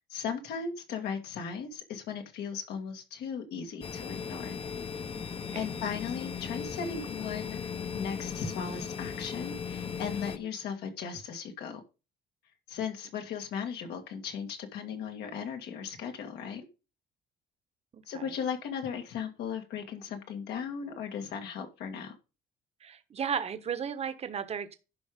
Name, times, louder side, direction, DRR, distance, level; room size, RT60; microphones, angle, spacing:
voice 1, 0.1-4.6 5.5-7.6 7.9-11.8 12.7-16.7 18.1-22.2, left 6 dB, 75° left, 2.1 m, -37 dB
sound 1, 3.8-10.4, left 6 dB, 35° left, 1.0 m, -37 dB
voice 2, 17.9-18.3 22.8-24.7, right 7 dB, 40° right, 1.2 m, -35 dB
11.0 x 5.0 x 5.1 m
cardioid pair, 110°, 17 cm